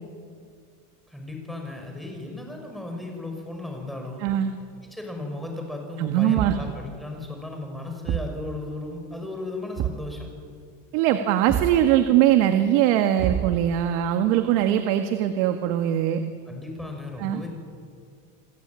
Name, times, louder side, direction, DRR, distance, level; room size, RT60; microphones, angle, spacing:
voice 1, 1.1-4.2 4.8-10.3 16.5-17.5, left 2 dB, ahead, 2 dB, 5.9 m, -35 dB
voice 2, 4.2-4.5 6.0-6.6 10.9-16.2 17.2-17.4, right 11 dB, 85° right, 7 dB, 1.8 m, -21 dB
Thump thud, 6.3-6.8 8.1-8.4 9.8-10.1 11.5-11.8 13.2-13.8, right 11 dB, 40° right, 1.2 m, -28 dB
29.0 x 21.0 x 8.9 m, 2.2 s
cardioid pair, 150°, 37 cm